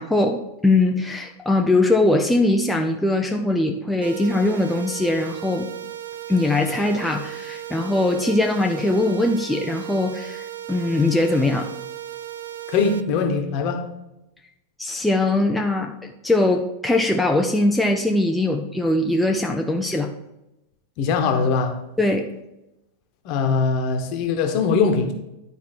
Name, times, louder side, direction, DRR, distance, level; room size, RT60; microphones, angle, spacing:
voice 1, 0.0-5.7 6.3-11.7 14.8-20.1 22.0-22.3, left 2 dB, 5° left, 2 dB, 0.6 m, -21 dB
sound 1, 4.0-13.0, right 11 dB, 65° right, 0.5 m, -36 dB
voice 2, 12.7-13.8 21.0-21.7 23.2-25.1, left 5 dB, 40° left, 5 dB, 1.2 m, -21 dB
11.0 x 4.6 x 4.4 m, 0.91 s
figure-of-eight pair, 90°, 0 cm